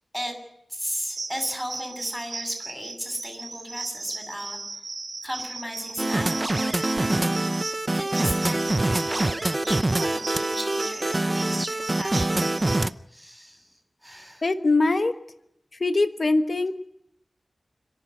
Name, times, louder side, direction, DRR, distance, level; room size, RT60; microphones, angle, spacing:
voice 1, 0.7-4.6 5.2-6.8 7.5-12.4 13.1-13.7 14.0-14.4, equal, ahead, 4 dB, 7.5 m, -35 dB
sound 1, 1.1-12.8, right 3 dB, 75° right, 2.8 m, -37 dB
sound 2, 6.0-12.9, right 2 dB, 35° right, 0.8 m, -25 dB
voice 2, 14.4-15.1 15.8-16.7, left 3 dB, 60° left, 9 dB, 1.2 m, -22 dB
29.5 x 11.5 x 9.6 m, 0.80 s
wide cardioid pair, 60°, 0 cm